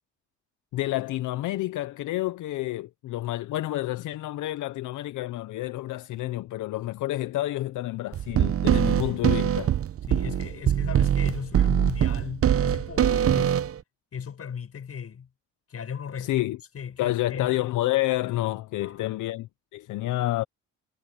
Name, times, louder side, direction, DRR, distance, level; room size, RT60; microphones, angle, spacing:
voice 1, 0.7-9.7 16.2-16.6 17.0-20.4, left 16 dB, 80° left, 0.8 m, -29 dB
sound 1, 8.1-13.8, right 10 dB, 50° right, 0.8 m, -23 dB
voice 2, 10.1-13.6 14.1-15.3 15.7-16.5 16.7-17.7 18.8-19.2, left 7 dB, 50° left, 6.6 m, -37 dB
cardioid pair, 90°, 30 cm